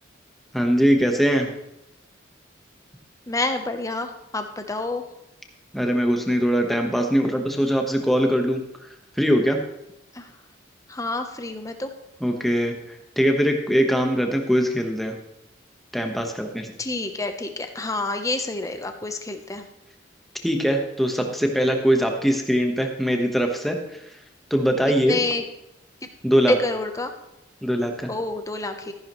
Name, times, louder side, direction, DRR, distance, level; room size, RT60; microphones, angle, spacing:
voice 1, 0.5-1.5 5.7-8.6 9.2-9.6 12.2-12.7 13.2-15.2 15.9-16.7 20.4-23.8 24.5-25.2 26.2-26.6 27.6-28.1, equal, ahead, 3 dB, 1.2 m, -21 dB
voice 2, 3.3-5.0 10.1-10.3 10.9-11.9 16.8-19.6 25.0-25.4 26.0-26.1 26.5-27.1 28.1-28.9, left 2 dB, 15° left, 6 dB, 0.9 m, -28 dB
13.5 x 11.0 x 3.1 m, 0.86 s
head